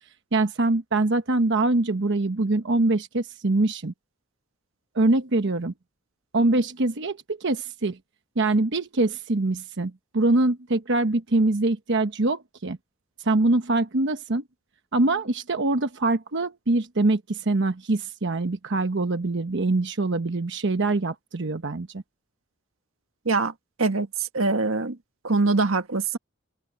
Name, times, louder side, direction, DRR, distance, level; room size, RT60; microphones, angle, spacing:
voice 1, 0.3-3.9 4.9-5.7 6.3-8.0 8.4-12.8 13.2-14.4 14.9-22.0, right 2 dB, 60° right, 1.0 m, -24 dB
voice 2, 23.8-25.0 25.2-26.2, right 3 dB, 90° right, 1.5 m, -23 dB
open air
head